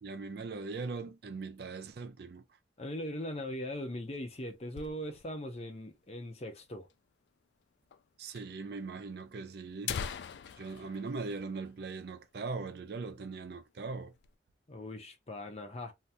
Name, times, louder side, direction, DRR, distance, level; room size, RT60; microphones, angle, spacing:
voice 1, 0.0-2.4 8.2-10.0 10.6-14.1, right 4 dB, 60° right, 0.4 m, -40 dB
voice 2, 2.8-6.9 14.7-15.9, left 1 dB, 35° left, 0.6 m, -40 dB
sound 1, 3.7-5.5 5.8-5.9 6.1-6.2 6.9-7.0 7.9-8.0 8.3-8.4 9.2-9.3 9.6-12.2 12.6-12.7 13.1-13.4 13.8-14.3, left 7 dB, 70° left, 0.3 m, -42 dB
2.8 x 2.0 x 3.3 m
head